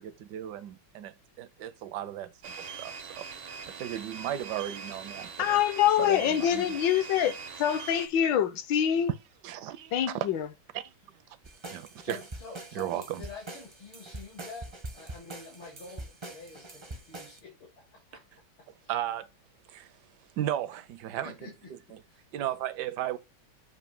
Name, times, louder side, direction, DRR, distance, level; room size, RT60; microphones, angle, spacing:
voice 1, 0.0-5.6 6.0-6.8 8.2-8.3 9.4-10.3 10.7-10.9 11.7-12.2 12.8-13.2 18.9-19.3 19.7-19.9 20.4-21.3 21.9-22.0 22.3-23.2, right 12 dB, 75° right, 1.0 m, -35 dB
sound 1, 2.4-8.1, right 5 dB, 90° right, 1.7 m, -42 dB
voice 2, 5.4-9.1 9.9-10.5, left 10 dB, 70° left, 1.4 m, -25 dB
sound 2, 11.4-17.4, right 2 dB, 40° right, 0.4 m, -44 dB
voice 3, 12.0-18.3 18.6-18.9 21.1-21.7 22.1-22.3, left 4 dB, 85° left, 3.4 m, -47 dB
8.1 x 2.7 x 5.2 m
omnidirectional pair, 2.2 m